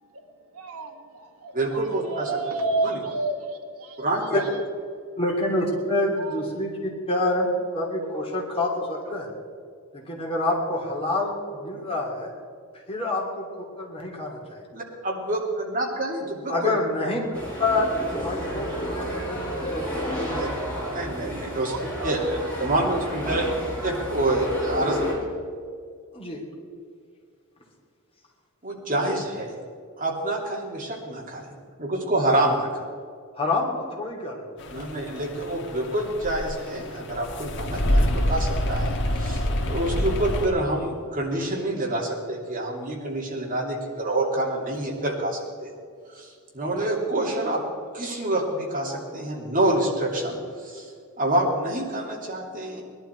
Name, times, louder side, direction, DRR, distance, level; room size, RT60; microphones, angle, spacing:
voice 1, 0.5-4.1 5.7-5.8 6.2-6.4 8.0-8.3 19.8-19.9 20.4-20.5 21.6-22.1, right 2 dB, 75° right, 4 dB, 1.4 m, -31 dB
voice 2, 1.5-2.3 2.8-3.0 4.0-4.4 15.0-17.1 20.2-20.5 20.9-21.7 22.0-23.5 23.8-25.3 28.6-29.5 30.0-31.5 31.8-32.8 34.7-45.7 46.1-47.6 47.9-50.9 51.2-52.8, right 1 dB, 40° right, -2 dB, 2.8 m, -27 dB
voice 3, 5.2-7.5 7.7-9.3 9.9-12.3 12.9-13.5 13.8-14.6 16.5-17.3 17.6-20.4 26.1-26.4 33.3-34.4, left 2 dB, 25° left, -2 dB, 3.0 m, -27 dB
sound 1, 17.3-25.1, equal, 10° left, 4.7 m, -31 dB
sound 2, 34.6-40.5, left 1 dB, 55° left, 1.3 m, -27 dB
20.5 x 11.5 x 4.6 m, 2.1 s
head